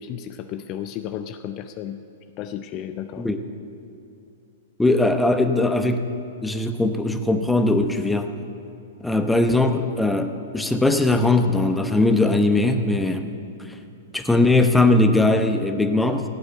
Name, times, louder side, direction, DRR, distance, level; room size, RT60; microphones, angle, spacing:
voice 1, 0.0-2.0 2.4-3.3, left 10 dB, 40° left, 9 dB, 0.5 m, -33 dB
voice 2, 4.8-6.1 6.4-8.3 9.0-13.3 14.1-16.2, left 2 dB, 5° left, 7 dB, 0.9 m, -20 dB
16.0 x 8.8 x 6.5 m, 2.7 s
figure-of-eight pair, 110°, 0 cm